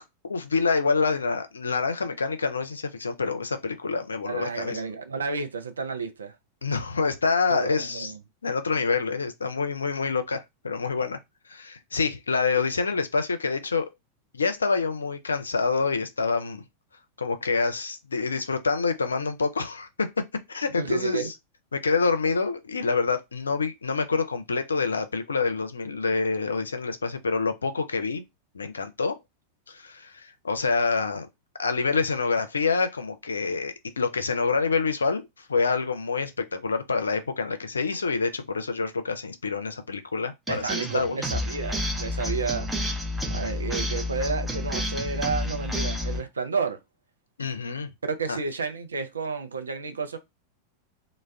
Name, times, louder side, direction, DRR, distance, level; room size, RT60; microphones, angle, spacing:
voice 1, 0.3-4.8 6.6-8.1 8.4-11.2 11.5-13.9 14.3-16.6 17.2-21.3 21.7-28.2 28.5-29.2 29.7-31.3 31.6-35.2 35.5-41.2 47.4-47.9 48.3-48.4, left 4 dB, 75° left, 0.4 m, -27 dB
voice 2, 4.2-6.4 7.5-8.2 20.7-21.3 40.5-42.7 43.3-46.8 48.0-50.2, right 5 dB, 70° right, 0.4 m, -31 dB
sound 1, 40.5-46.2, left 1 dB, 5° right, 0.6 m, -30 dB
2.2 x 2.1 x 3.4 m
figure-of-eight pair, 90°, 0 cm